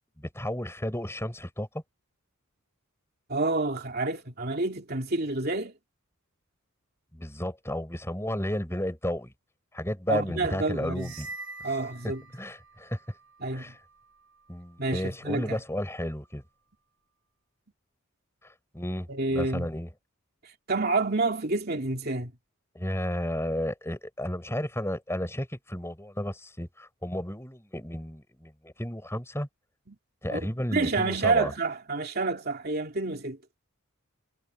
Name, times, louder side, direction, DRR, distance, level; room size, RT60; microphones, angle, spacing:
voice 1, 0.2-1.8 7.1-9.3 9.7-11.3 11.6-11.7 12.0-13.0 13.5-13.8 14.5-16.4 18.7-19.9 22.7-29.5 30.2-31.5, left 1 dB, 10° left, 6.4 m, -33 dB
voice 2, 3.3-5.7 10.1-11.1 11.6-12.2 13.4-13.7 14.8-15.6 19.1-19.7 20.4-22.3 29.9-30.0 30.3-33.4, right 3 dB, 45° right, 2.9 m, -29 dB
sound 1, 10.9-12.8, right 3 dB, 65° right, 6.3 m, -43 dB
head